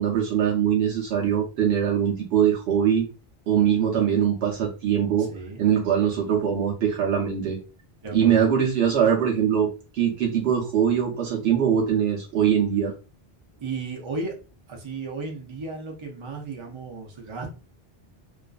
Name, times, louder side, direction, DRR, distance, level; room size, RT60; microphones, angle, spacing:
voice 1, 0.0-3.1 3.5-5.3 5.6-7.6 8.1-9.7 9.9-12.9, right 8 dB, 85° right, -2 dB, 0.9 m, -22 dB
voice 2, 5.2-5.6 8.0-8.5 13.6-14.3 14.7-17.5, right 3 dB, 40° right, 0 dB, 0.4 m, -34 dB
2.4 x 2.3 x 2.2 m, 0.33 s
omnidirectional pair, 1.0 m